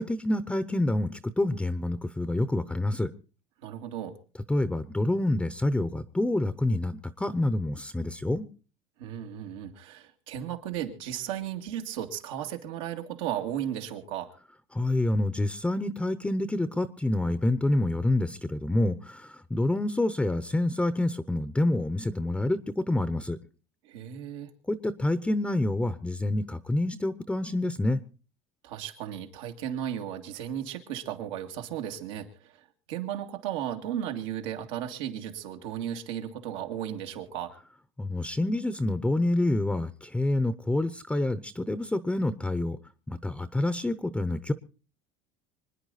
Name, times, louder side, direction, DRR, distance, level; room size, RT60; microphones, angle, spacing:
voice 1, 0.0-3.1 4.5-8.5 14.7-23.4 24.7-28.0 38.0-42.8 43.1-44.5, left 1 dB, 5° left, 13 dB, 0.7 m, -27 dB
voice 2, 3.6-4.1 9.0-14.3 23.8-24.5 28.6-37.5, right 10 dB, 90° right, 3 dB, 2.4 m, -35 dB
25.5 x 10.0 x 4.1 m, 0.37 s
supercardioid pair, 125°, 16 cm